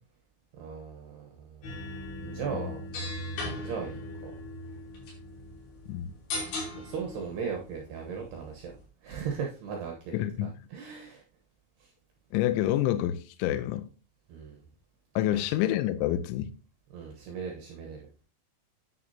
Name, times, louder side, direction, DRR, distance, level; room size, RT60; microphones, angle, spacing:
voice 1, 0.6-1.7 2.2-2.8 3.6-4.0 4.2-4.3 6.7-8.7 9.0-10.1 10.4-11.2 11.8-11.9 14.3-14.6 15.3-15.5 16.9-18.1, right 6 dB, 70° right, 2.6 m, -37 dB
sound 1, 1.6-8.8, left 1 dB, 65° left, 5.4 m, -39 dB
voice 2, 10.1-10.5 12.3-13.9 15.2-16.5, left 13 dB, 85° left, 2.7 m, -28 dB
9.8 x 9.5 x 2.8 m
omnidirectional pair, 6.0 m